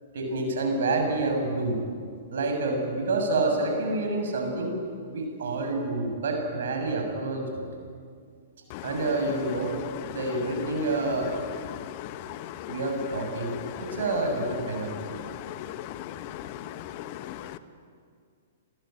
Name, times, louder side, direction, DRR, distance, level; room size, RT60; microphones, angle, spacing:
voice 1, 0.1-1.8 2.3-4.7 5.1-7.6 8.8-9.8 10.1-11.3 12.7-15.1, right 2 dB, 60° right, 3 dB, 7.3 m, -28 dB
voice 2, 15.7-16.4 17.3-17.6, left 12 dB, 40° left, 12 dB, 1.3 m, -38 dB
27.0 x 20.5 x 9.2 m, 2.1 s
figure-of-eight pair, 110°, 0 cm